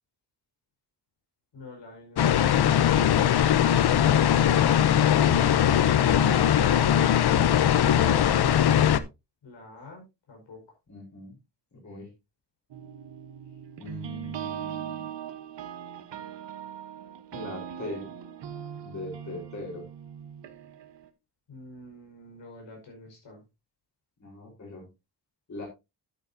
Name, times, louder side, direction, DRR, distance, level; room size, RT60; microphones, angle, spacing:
voice 1, 1.5-2.5 9.4-10.6 21.5-23.4, left 2 dB, 90° left, 1 dB, 5.2 m, -47 dB
sound 1, 2.2-9.0, left 10 dB, 65° left, 0.8 m, -20 dB
voice 2, 5.7-6.6 10.9-11.4 11.7-12.1 13.8-15.1 17.3-18.1 18.8-19.9 24.2-24.9 25.5-25.7, left 2 dB, 45° left, 0 dB, 4.4 m, -41 dB
sound 2, 12.7-21.1, right 9 dB, 85° right, 1.2 m, -40 dB
10.5 x 9.7 x 2.7 m, 0.24 s
wide cardioid pair, 125°, 42 cm